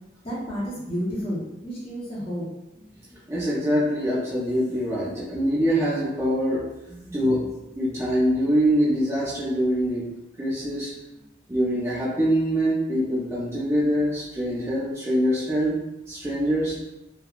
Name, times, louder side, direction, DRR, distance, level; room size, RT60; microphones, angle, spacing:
voice 1, 0.2-2.5, equal, 30° left, -9 dB, 0.8 m, -31 dB
voice 2, 3.1-7.5 7.7-10.0 10.4-10.9 11.5-16.8, equal, 15° right, -8 dB, 0.5 m, -24 dB
3.3 x 2.2 x 2.3 m, 0.94 s
head